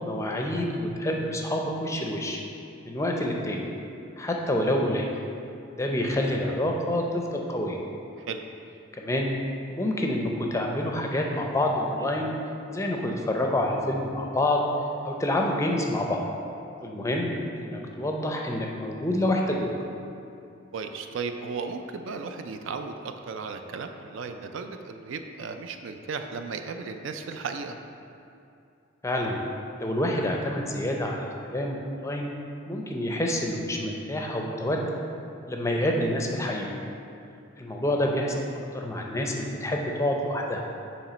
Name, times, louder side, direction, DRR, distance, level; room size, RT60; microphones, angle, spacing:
voice 1, 0.0-2.4 2.9-3.6 4.2-5.1 5.7-7.8 8.9-9.3 9.7-12.3 12.7-14.6 15.0-16.2 16.8-17.3 17.6-19.7 29.0-29.4 29.8-32.3 32.7-34.8 35.5-36.7 37.6-38.5 38.7-40.6, left 1 dB, 15° left, 0 dB, 0.5 m, -27 dB
voice 2, 20.7-27.8, right 5 dB, 65° right, 6 dB, 0.4 m, -35 dB
7.1 x 3.1 x 5.0 m, 2.6 s
head